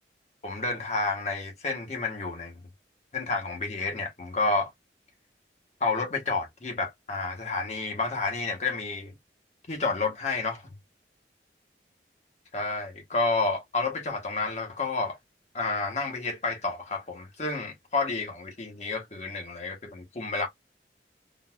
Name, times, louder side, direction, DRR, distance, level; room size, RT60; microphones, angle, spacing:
voice 1, 0.4-2.5 3.1-4.7 5.8-9.1 9.7-10.6 12.5-15.2 15.5-20.5, left 3 dB, 40° left, 1.0 m, -30 dB
3.8 x 2.4 x 2.3 m
head